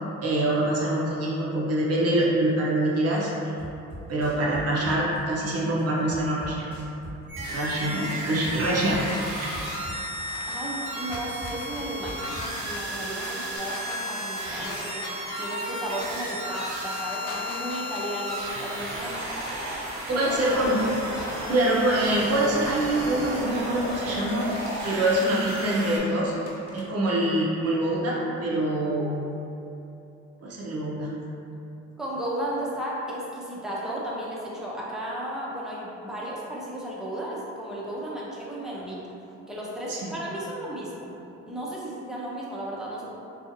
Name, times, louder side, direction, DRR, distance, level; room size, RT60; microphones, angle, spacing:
voice 1, 0.2-3.3 4.1-6.6 7.5-9.0 9.4-9.5 20.2-20.8 21.5-24.5 24.8-26.3 26.7-29.2 30.4-31.1 39.9-40.1, right 1 dB, 55° right, -4 dB, 0.6 m, -25 dB
sound 1, 3.6-5.2 5.5-7.7 8.0-10.2 10.5-12.7 13.0-13.6, equal, 20° left, 1.1 m, -42 dB
sound 2, 7.3-26.0, right 1 dB, 75° right, 0.8 m, -33 dB
voice 2, 7.5-8.0 10.5-15.0 15.4-20.8 32.0-39.0 39.5-41.1 41.5-43.2, right 1 dB, ahead, -6 dB, 0.5 m, -34 dB
sound 3, 8.9-21.5 21.9-26.8, left 2 dB, 55° left, 0.6 m, -42 dB
2.6 x 2.4 x 2.5 m, 2.7 s
cardioid pair, 90°, 30 cm